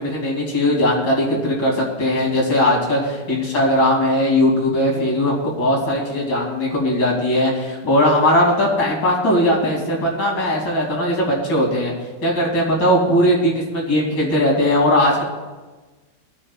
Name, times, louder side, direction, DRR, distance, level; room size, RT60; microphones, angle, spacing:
voice 1, 0.0-11.9 12.2-15.2, left 1 dB, 80° left, -3 dB, 3.7 m, -19 dB
24.0 x 9.8 x 2.4 m, 1.3 s
omnidirectional pair, 1.9 m